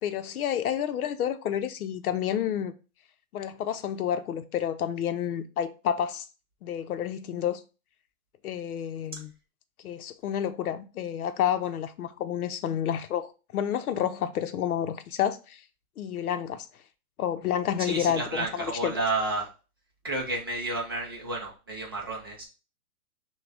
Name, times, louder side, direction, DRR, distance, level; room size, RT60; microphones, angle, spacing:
voice 1, 0.0-2.7 3.3-6.3 6.6-7.6 8.4-9.3 9.8-15.6 16.0-16.7 17.2-19.0, left 9 dB, 85° left, 0.7 m, -29 dB
voice 2, 17.8-19.5 20.0-22.4, right 2 dB, 20° right, 0.3 m, -31 dB
5.9 x 2.3 x 3.4 m
hypercardioid pair, 155°, 43 cm